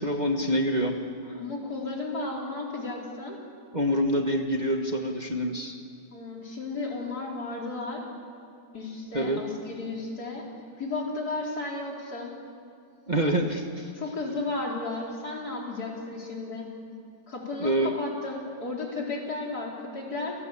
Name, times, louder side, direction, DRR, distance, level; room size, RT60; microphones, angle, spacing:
voice 1, 0.0-1.4 3.7-5.7 9.1-9.4 13.1-13.9 17.6-17.9, equal, 30° right, 3 dB, 1.4 m, -26 dB
voice 2, 1.4-3.4 6.1-8.0 8.7-10.5 10.8-12.3 13.9-16.7 17.3-20.3, left 3 dB, 65° left, -2 dB, 4.6 m, -34 dB
28.5 x 18.0 x 8.4 m, 2.4 s
omnidirectional pair, 1.8 m